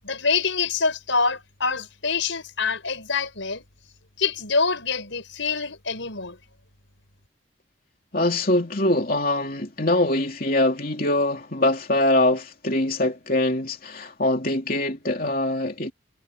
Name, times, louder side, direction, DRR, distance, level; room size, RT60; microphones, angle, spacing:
voice 1, 0.0-3.6 4.2-6.4, left 4 dB, 90° left, 5.7 m, -25 dB
voice 2, 8.1-15.9, left 1 dB, 50° left, 3.2 m, -23 dB
head